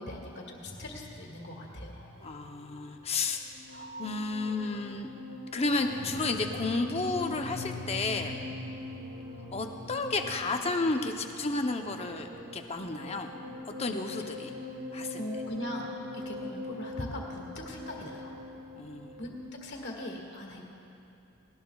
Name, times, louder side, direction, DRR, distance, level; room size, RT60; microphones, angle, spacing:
voice 1, 0.0-2.1 15.2-18.3 19.2-19.4 19.6-20.6, left 1 dB, 55° left, -1 dB, 2.0 m, -40 dB
sound 1, 0.7-19.5, left 2 dB, 60° right, 2.1 m, -42 dB
voice 2, 2.2-3.4 3.7-5.1 5.5-8.4 9.5-13.4 13.7-14.5 14.9-15.2 18.8-19.2, left 3 dB, 30° left, 4 dB, 0.8 m, -32 dB
19.0 x 19.0 x 2.4 m, 2.9 s
head